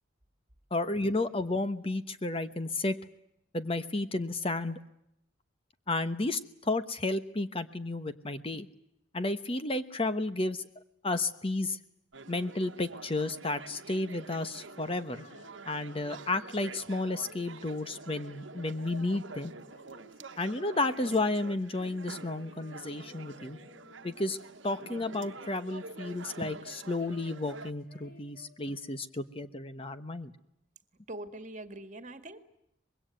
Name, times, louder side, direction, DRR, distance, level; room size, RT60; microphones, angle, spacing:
voice 1, 0.7-3.0 3.5-4.8 5.9-8.7 9.1-10.7 11.0-11.8 12.3-15.2 15.7-19.5 20.4-23.6 24.0-24.4 24.6-30.3, left 2 dB, 30° left, 11 dB, 1.1 m, -32 dB
sound 1, 12.1-27.7, right 3 dB, 70° right, 1.3 m, -47 dB
Female singing, 14.1-24.4 24.7-26.4 26.6-29.3, left 1 dB, 45° left, 4.4 m, -57 dB
voice 2, 31.1-32.4, right 1 dB, 40° right, 10 dB, 2.0 m, -42 dB
25.0 x 22.0 x 9.2 m, 0.79 s
head